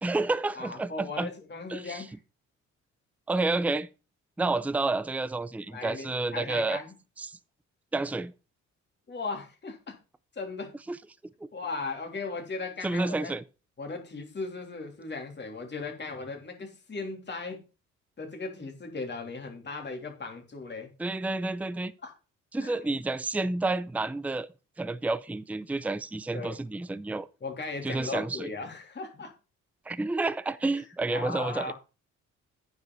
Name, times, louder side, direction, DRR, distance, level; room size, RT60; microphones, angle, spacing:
voice 1, 0.0-1.3 1.7-2.0 3.3-3.9 4.4-6.8 7.2-7.4 7.9-8.3 10.9-11.0 12.8-13.4 21.0-21.9 22.5-24.5 24.8-27.3 27.8-28.5 29.9-31.7, right 2 dB, 5° right, 0.5 m, -30 dB
voice 2, 0.5-2.2 4.5-4.6 5.7-6.9 9.1-10.0 10.3-10.7 11.5-13.3 13.8-17.6 18.2-20.9 22.0-22.1 22.6-22.8 26.3-26.6 27.4-29.3 31.1-31.7, left 3 dB, 35° left, 3.3 m, -37 dB
9.5 x 5.3 x 5.6 m
cardioid pair, 90°, 30 cm